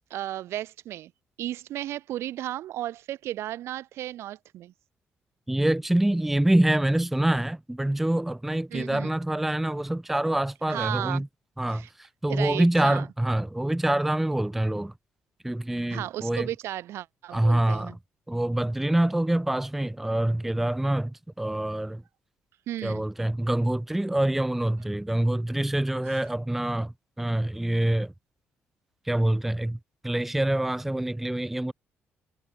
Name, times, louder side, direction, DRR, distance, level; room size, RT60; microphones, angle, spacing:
voice 1, 0.1-1.1 1.4-4.7 8.7-9.1 10.7-11.2 11.7-11.9 12.3-13.1 15.9-17.9 22.7-23.0 26.1-26.2, right 13 dB, 70° right, 1.4 m, -34 dB
voice 2, 5.5-11.3 11.6-14.9 15.4-16.5 17.3-17.9 18.3-22.0 22.8-28.1 29.1-29.8 30.0-31.7, right 1 dB, 5° right, 0.8 m, -26 dB
cardioid pair, 175°, 5 cm